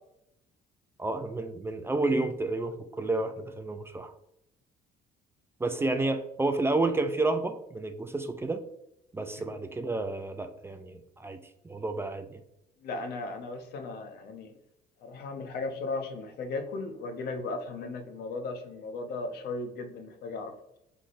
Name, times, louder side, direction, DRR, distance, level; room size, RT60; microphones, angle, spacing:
voice 1, 1.0-4.1 5.6-8.6 9.1-11.4 11.6-12.4, right 2 dB, 15° right, 7 dB, 0.4 m, -30 dB
voice 2, 12.8-14.5 15.0-20.5, left 3 dB, 70° left, 6 dB, 0.9 m, -36 dB
5.8 x 3.5 x 2.4 m, 0.81 s
cardioid pair, 110°, 17 cm